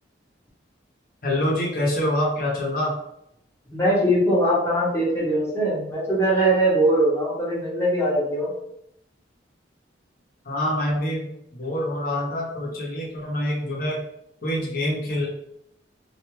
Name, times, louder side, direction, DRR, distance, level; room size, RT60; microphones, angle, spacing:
voice 1, 1.2-3.0 10.4-14.0 14.4-15.3, left 1 dB, 45° left, -4 dB, 0.9 m, -26 dB
voice 2, 3.7-8.5, right 1 dB, 15° left, -7 dB, 0.9 m, -21 dB
2.4 x 2.2 x 3.0 m, 0.77 s
head